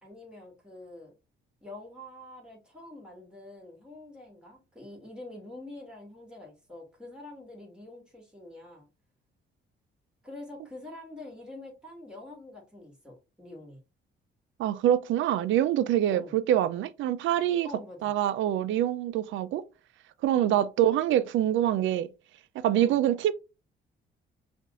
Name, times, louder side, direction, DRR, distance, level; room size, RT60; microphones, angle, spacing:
voice 1, 0.0-1.1 1.6-8.9 10.2-13.8 16.1-16.4 17.6-18.1 20.4-20.6 22.7-23.0, left 2 dB, 5° right, 2.2 m, -46 dB
voice 2, 14.6-17.7 18.0-19.6 20.2-22.1 22.6-23.3, right 11 dB, 75° right, 0.4 m, -25 dB
5.5 x 2.6 x 2.4 m
cardioid pair, 90°, 20 cm